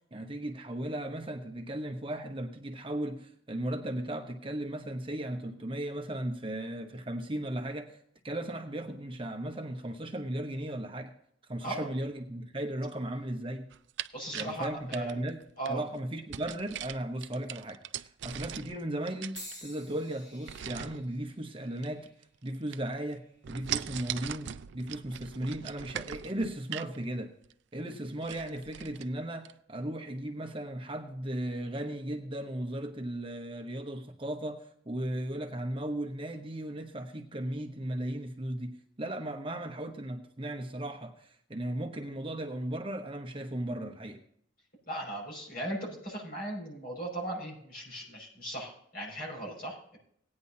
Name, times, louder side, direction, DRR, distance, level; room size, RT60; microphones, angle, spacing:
voice 1, 0.1-11.1 11.5-13.7 14.3-22.1 22.4-27.3 27.7-44.2, right 1 dB, 25° right, 0.9 m, -36 dB
sound 1, 13.7-15.7 16.3-18.8 19.1-19.9 20.5-21.0 21.8-22.5 22.7-23.1 23.4-27.0 27.4-27.5 27.9-28.0 28.2-29.1 29.4-29.5, right 10 dB, 65° right, 0.4 m, -40 dB
voice 2, 14.1-15.1 15.6-15.8 44.9-50.0, right 1 dB, 50° left, 5.5 m, -38 dB
sound 2, 19.4-23.5 24.2-24.6 25.6-25.8, equal, 20° left, 2.5 m, -51 dB
18.0 x 9.6 x 2.8 m
head